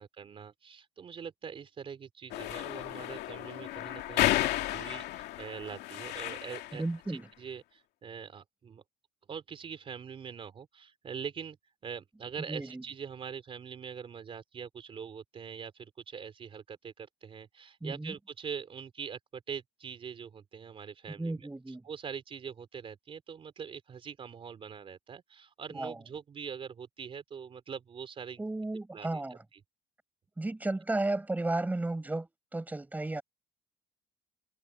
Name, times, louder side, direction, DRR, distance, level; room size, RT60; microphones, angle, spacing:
voice 1, 0.0-6.8 7.1-8.8 9.3-11.6 11.8-21.5 21.8-28.4 28.9-29.2 29.5-29.6, right 7 dB, 30° right, 3.4 m, -43 dB
sound 1, 2.3-6.9, left 15 dB, 70° left, 2.3 m, -33 dB
voice 2, 6.7-7.3 12.5-12.8 17.8-18.1 21.2-21.8 25.7-26.0 28.4-29.4 30.4-33.2, right 2 dB, 10° right, 5.8 m, -34 dB
cardioid pair, 150°, 18 cm